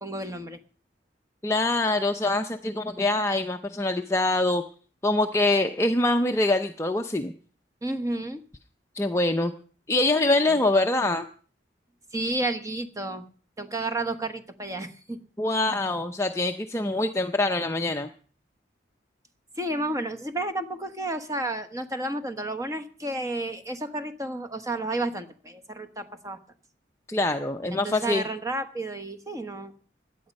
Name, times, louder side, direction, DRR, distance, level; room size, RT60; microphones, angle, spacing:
voice 1, 0.0-0.6 7.8-8.4 10.4-10.6 12.1-13.2 13.6-15.2 19.6-26.4 27.7-29.7, right 2 dB, 20° right, 8 dB, 1.2 m, -31 dB
voice 2, 1.4-4.6 5.0-7.3 8.9-9.5 9.9-11.3 15.4-18.1 27.1-28.2, left 2 dB, 15° left, 5 dB, 0.6 m, -24 dB
17.0 x 11.0 x 5.3 m, 0.42 s
head